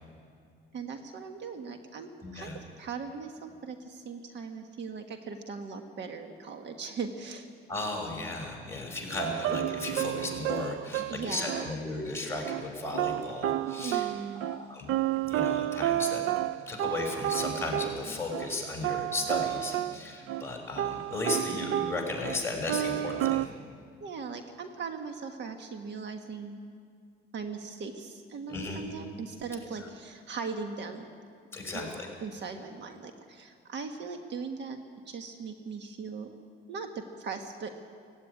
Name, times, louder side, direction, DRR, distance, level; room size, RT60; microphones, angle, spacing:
voice 1, 0.7-7.5 11.1-11.8 13.8-14.5 24.0-26.6 27.3-31.0 31.7-31.9 32.2-34.8 35.1-36.3 36.7-37.7, right 5 dB, 55° right, 5 dB, 1.5 m, -39 dB
voice 2, 2.2-2.6 7.7-14.1 14.4-14.9 15.2-16.2 16.7-23.5 28.5-28.8 31.5-32.1, left 2 dB, 10° left, 0 dB, 5.7 m, -35 dB
sound 1, 9.2-11.7 12.4-12.6 12.9-18.5 18.8-20.0 20.3-20.4 20.8-22.4 22.7-23.5, right 13 dB, 80° right, 0.5 m, -31 dB
16.5 x 16.0 x 9.7 m, 2.3 s
cardioid pair, 110°, 21 cm